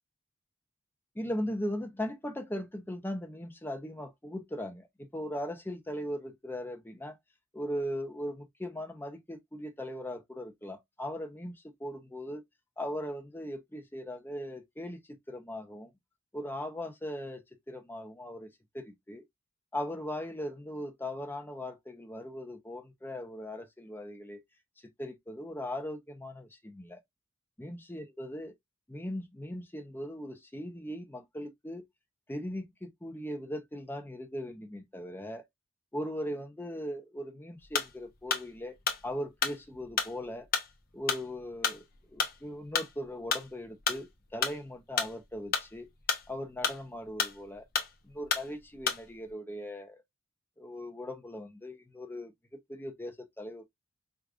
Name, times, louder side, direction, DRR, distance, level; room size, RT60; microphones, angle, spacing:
voice 1, 1.1-7.2 7.5-12.4 12.8-15.9 16.3-17.4 17.7-18.5 18.7-19.2 19.7-24.4 25.0-27.0 27.6-28.5 28.9-31.8 32.3-35.4 35.9-38.8 39.0-40.5 40.9-41.8 42.1-45.9 46.3-47.6 48.0-50.0 50.6-53.6, equal, 10° left, 0.6 m, -39 dB
sound 1, 37.7-49.3, left 6 dB, 45° left, 0.8 m, -32 dB
4.8 x 2.4 x 2.4 m
head